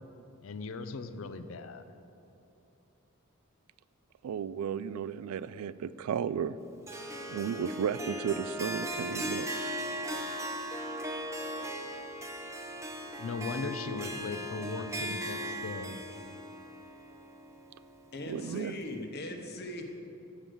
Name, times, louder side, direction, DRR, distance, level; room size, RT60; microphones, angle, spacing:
voice 1, 0.4-1.8 13.2-16.0, left 3 dB, 65° left, 10 dB, 0.5 m, -38 dB
voice 2, 4.2-6.6 7.3-9.5 18.3-18.7, right 7 dB, 85° right, 17 dB, 0.3 m, -34 dB
Harp, 6.9-18.1, equal, 15° right, 0.6 m, -38 dB
voice 3, 18.1-19.9, left 1 dB, 45° left, 4 dB, 0.9 m, -39 dB
7.2 x 6.6 x 7.7 m, 2.9 s
head